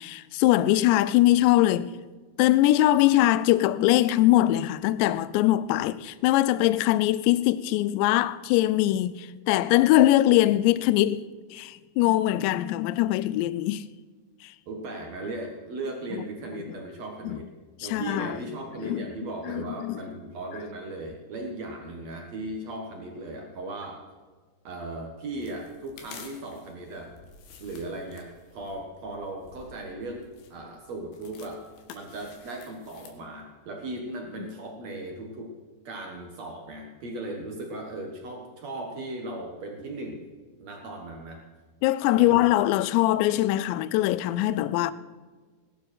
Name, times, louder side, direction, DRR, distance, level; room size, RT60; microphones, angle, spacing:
voice 1, 0.0-1.9 2.4-11.2 11.5-13.9 14.4-14.5 17.3-17.4 17.8-18.4 18.8-19.1 19.5-20.0 41.8-44.9, left 15 dB, 85° left, 2.5 m, -22 dB
voice 2, 14.7-17.5 17.8-24.0 24.6-27.1 27.6-31.6 31.9-35.6 35.8-40.2 40.6-41.4 42.1-42.4, right 2 dB, 80° right, 1.5 m, -37 dB
sound 1, 25.4-33.2, left 6 dB, 70° left, 3.7 m, -51 dB
20.0 x 12.0 x 4.4 m
omnidirectional pair, 5.6 m